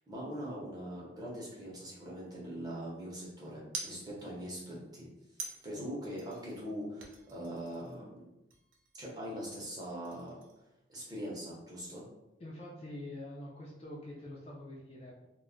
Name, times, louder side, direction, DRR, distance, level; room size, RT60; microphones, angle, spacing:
voice 1, 0.1-5.1 5.4-8.3 9.0-10.4 10.9-12.0, equal, 20° right, -5 dB, 0.6 m, -42 dB
sound 1, 1.8-2.6 3.7-4.5 5.4-6.7 7.0-8.2 8.5-9.1 9.5-10.7, right 4 dB, 85° right, 0.5 m, -48 dB
voice 2, 12.4-15.3, left 1 dB, 30° left, -3 dB, 0.4 m, -45 dB
2.2 x 2.0 x 3.6 m, 0.93 s
head